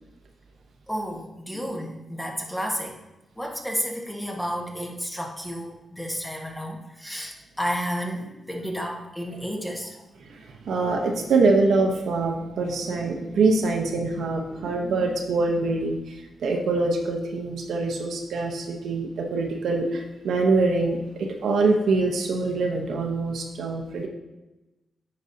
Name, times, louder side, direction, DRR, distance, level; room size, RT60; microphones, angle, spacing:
voice 1, 0.9-3.0 3.4-10.0, equal, 5° left, 1 dB, 1.3 m, -31 dB
voice 2, 10.7-16.0 16.4-24.1, right 3 dB, 80° right, 2 dB, 1.0 m, -24 dB
9.4 x 5.3 x 2.8 m, 1.0 s
cardioid pair, 80°, 0 cm